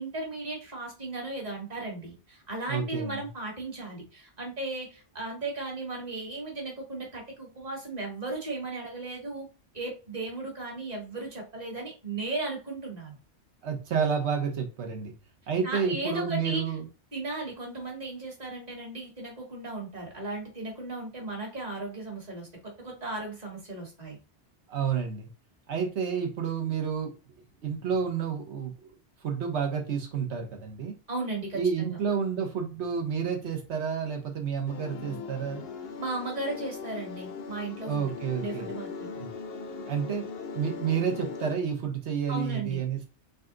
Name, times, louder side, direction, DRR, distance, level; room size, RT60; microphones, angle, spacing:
voice 1, 0.0-9.5 9.7-13.2 15.6-16.7 17.1-24.2 31.1-32.0 36.0-38.1 38.4-39.1 42.3-42.8, right 2 dB, 35° right, 1.6 m, -36 dB
voice 2, 2.7-3.2 13.6-15.1 15.5-16.9 24.7-25.3 25.7-27.2 27.6-28.7 29.2-31.0 31.5-35.6 37.9-38.7 39.1-39.3 39.9-40.2 40.5-43.0, right 6 dB, 75° right, 1.2 m, -30 dB
sound 1, 34.7-41.5, left 5 dB, 65° left, 0.7 m, -39 dB
4.1 x 2.2 x 3.7 m
omnidirectional pair, 1.2 m